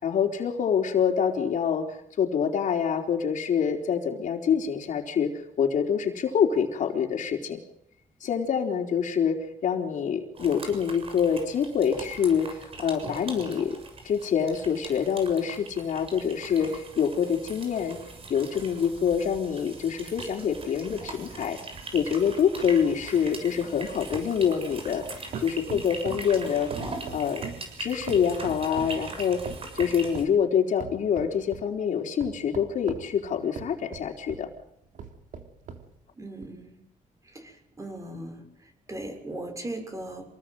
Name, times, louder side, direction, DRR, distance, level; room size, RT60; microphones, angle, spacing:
voice 1, 0.0-1.9 2.2-7.6 8.2-13.8 14.0-18.0 18.3-21.6 21.9-25.1 25.4-26.7 27.1-27.4 27.8-29.5 29.7-34.5, left 7 dB, 70° left, 3 dB, 4.1 m, -26 dB
sound 1, 10.3-30.2, right 3 dB, 45° right, 7.0 m, -41 dB
sound 2, 21.7-25.1 25.3-26.3 26.7-29.0 29.5-30.4 30.8-31.7 32.2-34.5 35.0-35.9 36.4-36.5, right 6 dB, 75° right, 3.3 m, -41 dB
voice 2, 36.2-36.8 37.3-38.4 38.9-40.4, right 1 dB, 25° right, 5 dB, 6.6 m, -38 dB
27.5 x 19.0 x 7.9 m, 0.76 s
cardioid pair, 130°, 14 cm